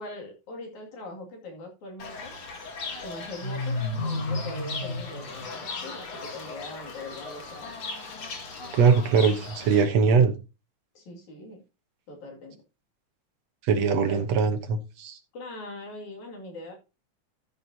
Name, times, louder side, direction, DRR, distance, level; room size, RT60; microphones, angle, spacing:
voice 1, 0.0-2.3 3.0-3.8 4.0-7.7 11.0-11.6 12.1-12.6 14.1-14.4 15.3-16.7, left 2 dB, 70° left, 3.9 m, -41 dB
Fowl / Bird, 2.0-9.8, left 3 dB, 50° left, 2.8 m, -35 dB
voice 2, 8.7-10.3 13.6-15.2, right 5 dB, 65° right, 2.1 m, -21 dB
14.0 x 7.2 x 2.8 m
omnidirectional pair, 3.4 m